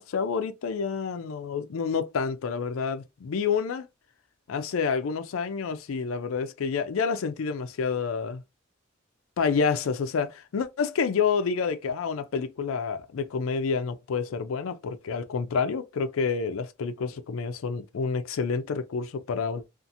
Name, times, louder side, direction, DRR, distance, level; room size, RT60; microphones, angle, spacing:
voice 1, 0.0-3.9 4.5-8.4 9.4-19.6, left 5 dB, 80° left, 0.4 m, -28 dB
2.7 x 2.5 x 2.5 m
head